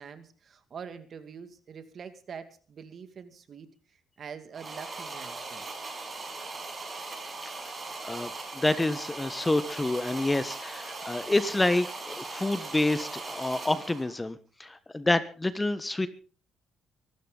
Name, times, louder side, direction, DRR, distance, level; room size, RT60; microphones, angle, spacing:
voice 1, 0.0-5.7, right 6 dB, 50° right, 9 dB, 2.3 m, -45 dB
sound 1, 4.5-14.1, right 3 dB, 30° right, 6.1 m, -39 dB
voice 2, 8.0-16.1, left 2 dB, 15° left, 13 dB, 1.3 m, -28 dB
24.0 x 13.0 x 4.0 m, 0.37 s
cardioid pair, 100°, 0 cm